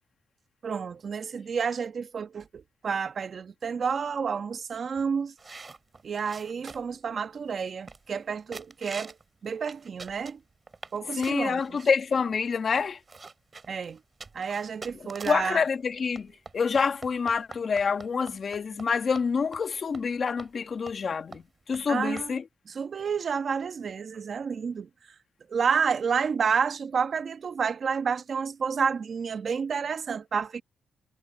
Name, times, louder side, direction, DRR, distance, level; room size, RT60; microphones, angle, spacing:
voice 1, 0.6-5.3 6.0-9.1 9.4-10.4 10.9-11.8 13.7-14.0 14.3-15.6 21.9-22.4 22.7-24.9 25.5-30.6, right 6 dB, 50° right, 1.2 m, -30 dB
sound 1, 5.4-7.0 7.5-7.6 7.9-8.2 8.5-9.2 9.6-11.0 11.2-11.9 12.5-12.6 12.8-15.5 16.2-18.9 19.2-19.3 19.5-19.7 19.9-20.1 20.4-20.5 20.9-21.1 21.3-21.4 21.7-21.8 22.2-22.3, right 4 dB, 30° right, 5.5 m, -44 dB
voice 2, 11.2-13.0 15.3-21.4 21.7-22.4, left 5 dB, 50° left, 1.8 m, -27 dB
cardioid pair, 90°, 0 cm